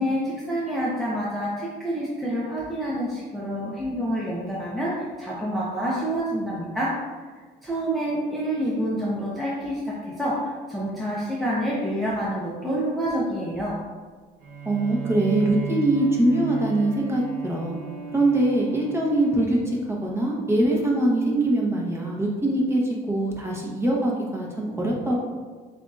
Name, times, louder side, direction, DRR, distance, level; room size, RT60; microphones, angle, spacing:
voice 1, 0.0-7.0 7.6-13.8, equal, ahead, -7 dB, 0.7 m, -27 dB
Bowed string instrument, 14.4-19.9, right 6 dB, 80° right, 1.0 m, -35 dB
voice 2, 14.6-17.8 18.1-25.2, right 1 dB, 15° right, -2 dB, 1.0 m, -23 dB
7.0 x 2.6 x 2.4 m, 1.4 s
cardioid pair, 110°, 17 cm